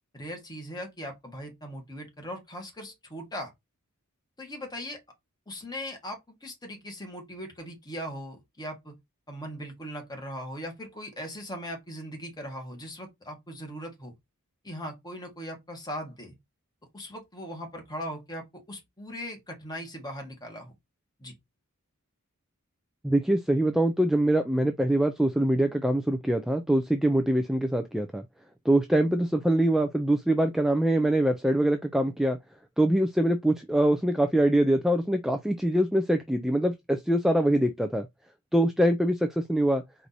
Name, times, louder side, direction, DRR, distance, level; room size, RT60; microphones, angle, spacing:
voice 1, 0.1-3.5 4.4-5.0 5.5-8.9 9.3-14.1 14.6-16.3 16.9-20.7 21.2-21.3, equal, 20° left, 1.4 m, -39 dB
voice 2, 23.0-28.2 28.7-32.4 32.8-38.1 38.5-39.8, right 1 dB, ahead, 0.3 m, -24 dB
4.6 x 2.7 x 4.1 m
head